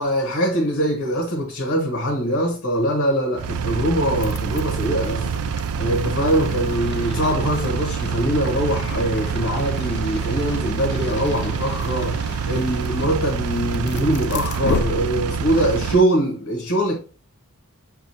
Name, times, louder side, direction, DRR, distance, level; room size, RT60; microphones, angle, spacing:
voice 1, 0.0-17.0, equal, 65° left, 1.2 m, -23 dB
Engine, 3.4-16.0, right 6 dB, 85° right, 0.3 m, -26 dB
sound 1, 4.0-15.6, left 4 dB, 50° left, 0.4 m, -35 dB
6.9 x 2.4 x 2.8 m
head